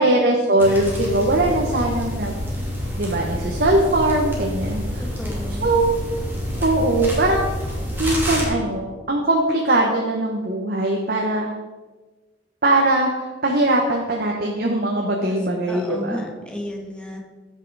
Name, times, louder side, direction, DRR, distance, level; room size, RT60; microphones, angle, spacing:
voice 1, 0.0-2.4 3.0-5.0 5.6-5.9 6.6-7.5 8.0-11.5 12.6-16.2, right 1 dB, 55° right, 0 dB, 1.2 m, -20 dB
sound 1, 0.6-8.5, equal, 10° right, 2.7 m, -27 dB
voice 2, 5.0-5.7 15.2-15.4 15.7-17.2, left 1 dB, 5° left, 0 dB, 1.7 m, -33 dB
15.5 x 5.7 x 4.8 m, 1.3 s
head